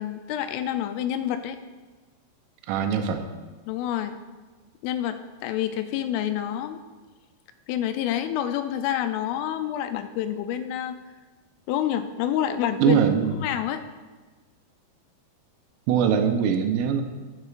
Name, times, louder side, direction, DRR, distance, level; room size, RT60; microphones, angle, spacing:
voice 1, 0.0-1.6 3.7-4.2 4.8-6.8 7.7-11.0 11.7-13.0 13.4-13.8, left 11 dB, 85° left, 9 dB, 3.1 m, -28 dB
voice 2, 2.7-3.2 12.8-13.4 15.9-17.0, right 7 dB, 90° right, 5 dB, 3.2 m, -22 dB
12.0 x 9.4 x 2.5 m, 1.3 s
omnidirectional pair, 5.6 m